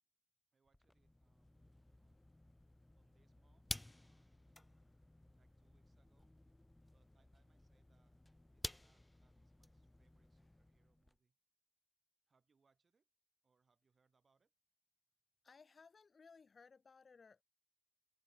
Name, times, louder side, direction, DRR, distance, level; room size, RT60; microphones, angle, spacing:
voice 1, 0.5-2.2 2.9-4.6 5.3-6.3 6.9-8.2 8.5-11.4 12.3-13.1 13.4-14.5, right 5 dB, 50° right, 7.7 m, -81 dB
sound 1, 0.7-11.2, left 1 dB, 15° left, 0.5 m, -53 dB
voice 2, 15.4-17.4, left 5 dB, 50° left, 3.4 m, -62 dB
cardioid pair, 60°, 0 cm